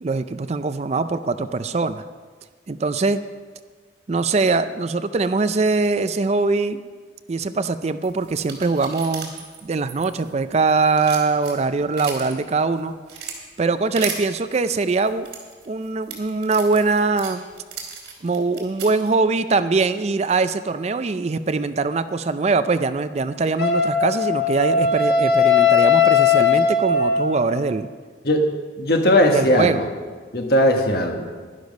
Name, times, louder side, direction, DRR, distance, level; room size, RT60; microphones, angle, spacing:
voice 1, 0.0-2.0 2.7-3.2 4.1-6.8 7.3-9.3 9.6-12.9 13.6-15.3 15.7-17.4 18.2-27.9 29.3-29.8, right 3 dB, 35° right, 12 dB, 0.4 m, -22 dB
sound 1, 8.0-10.5 10.8-12.3 12.8-13.4 14.0-14.2 14.9-19.1, right 6 dB, 85° right, 2.9 m, -35 dB
Wind instrument woodwind instrument, 23.6-27.6, left 5 dB, 75° left, 1.7 m, -18 dB
voice 2, 28.8-29.9 30.3-31.3, left 1 dB, 60° left, 3 dB, 1.4 m, -18 dB
11.5 x 11.0 x 5.3 m, 1.5 s
head